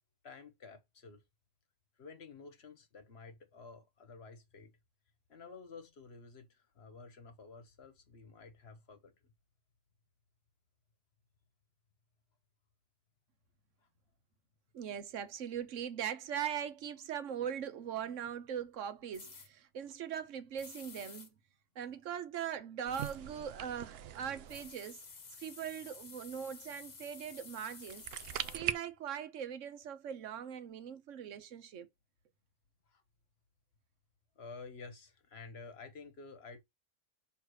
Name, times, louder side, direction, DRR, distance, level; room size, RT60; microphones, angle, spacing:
voice 1, 0.2-1.2 2.0-4.7 5.3-9.3 32.9-33.0 34.4-36.6, left 4 dB, 60° left, 1.3 m, -51 dB
voice 2, 14.7-21.3 21.8-25.0 25.4-28.1 28.5-31.9, right 8 dB, 85° right, 1.2 m, -40 dB
sound 1, 19.1-19.5 20.6-21.3 22.9-23.2 24.5-28.6, left 4 dB, 40° left, 1.0 m, -52 dB
sound 2, 22.9-25.0 27.7-28.7, right 11 dB, 65° right, 0.7 m, -41 dB
6.3 x 3.3 x 4.7 m
omnidirectional pair, 1.3 m